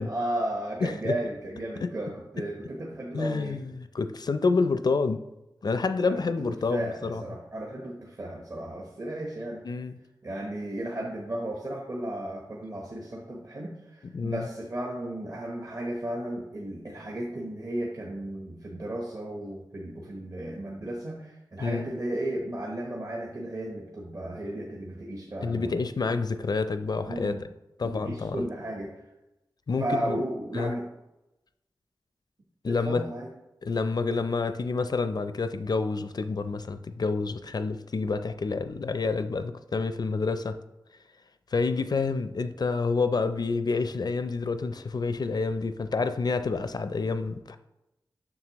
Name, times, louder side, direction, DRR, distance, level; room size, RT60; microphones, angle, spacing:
voice 1, 0.1-3.6 6.1-6.2 6.5-9.6 10.2-25.8 27.1-27.4 27.8-29.1 29.8-30.9 32.6-33.3, right 1 dB, 45° right, 1.0 m, -34 dB
voice 2, 0.8-1.1 1.8-1.9 3.1-5.2 5.6-7.2 9.6-10.0 14.1-14.4 21.6-21.9 25.4-27.3 27.8-28.4 29.7-30.2 30.5-30.7 32.6-33.0 33.6-40.6 41.5-47.6, left 4 dB, 55° left, 0.4 m, -28 dB
7.4 x 6.3 x 3.0 m
wide cardioid pair, 90°, 8 cm